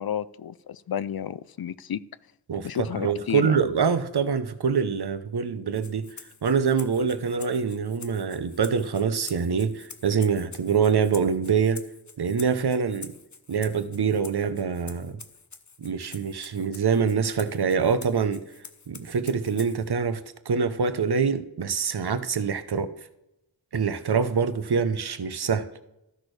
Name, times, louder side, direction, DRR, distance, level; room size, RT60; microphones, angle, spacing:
voice 1, 0.0-2.0 2.6-3.6, left 9 dB, 65° left, 0.5 m, -31 dB
voice 2, 2.5-6.1 6.4-11.8 12.2-13.1 13.5-15.2 15.8-18.4 18.9-20.2 20.5-22.9 23.7-25.7, right 6 dB, 80° right, 0.8 m, -25 dB
Rattle (instrument), 5.7-19.9, left 5 dB, 45° left, 0.8 m, -47 dB
14.0 x 6.2 x 3.3 m
wide cardioid pair, 65°, 39 cm